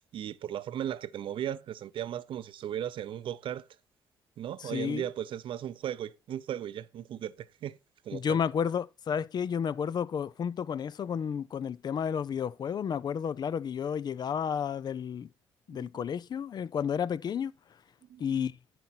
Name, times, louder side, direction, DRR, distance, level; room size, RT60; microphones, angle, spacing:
voice 1, 0.1-3.7 4.4-7.8 8.0-8.4 15.7-15.9 18.1-18.5, right 10 dB, 65° right, 0.6 m, -36 dB
voice 2, 4.6-5.0 8.1-15.3 15.7-17.5 18.2-18.5, left 7 dB, 50° left, 0.5 m, -31 dB
10.5 x 4.2 x 4.4 m
supercardioid pair, 60°, 9 cm